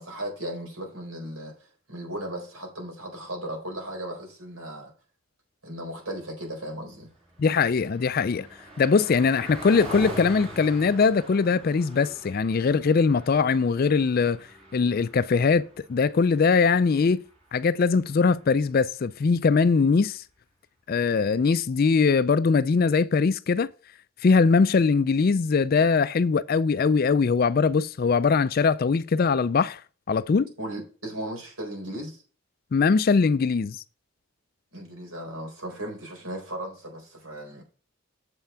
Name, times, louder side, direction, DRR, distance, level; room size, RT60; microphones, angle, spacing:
voice 1, 0.0-4.9 5.6-7.1 30.6-32.2 34.7-37.6, right 1 dB, 70° right, 4.3 m, -36 dB
Car passing by, 6.9-18.6, right 1 dB, 30° right, 3.0 m, -44 dB
voice 2, 7.4-8.5 8.8-14.4 14.7-15.6 15.9-17.2 17.5-20.2 20.9-23.7 24.2-29.8 30.1-30.5 32.7-33.8, left 5 dB, 40° left, 0.3 m, -21 dB
7.7 x 5.7 x 5.6 m
head